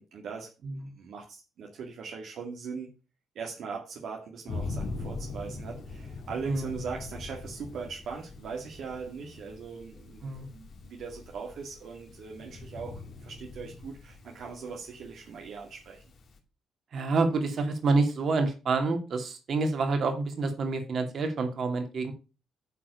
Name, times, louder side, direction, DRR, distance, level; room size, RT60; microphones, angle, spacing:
voice 1, 0.0-2.9 3.4-16.0, right 5 dB, 70° right, 0 dB, 2.1 m, -40 dB
voice 2, 0.6-0.9 6.5-6.8 10.2-10.5 16.9-22.1, right 3 dB, 55° right, 5 dB, 2.8 m, -28 dB
Thunder, 4.5-16.4, left 3 dB, 55° left, 2.6 m, -42 dB
9.7 x 4.5 x 7.0 m, 0.31 s
cardioid pair, 90°, 0 cm